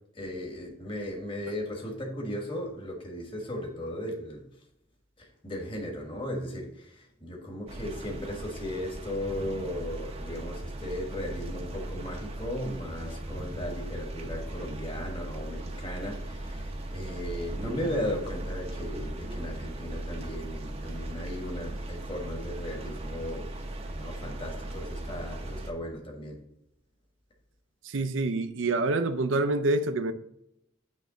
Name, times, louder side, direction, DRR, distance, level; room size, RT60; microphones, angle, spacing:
voice 1, 0.1-4.5 5.2-23.5 23.9-26.4, left 1 dB, 25° left, 1.4 m, -36 dB
sound 1, 7.7-25.7, right 1 dB, 30° right, 0.7 m, -38 dB
voice 2, 27.8-30.1, right 2 dB, 70° right, 0.5 m, -27 dB
9.2 x 3.2 x 3.8 m
head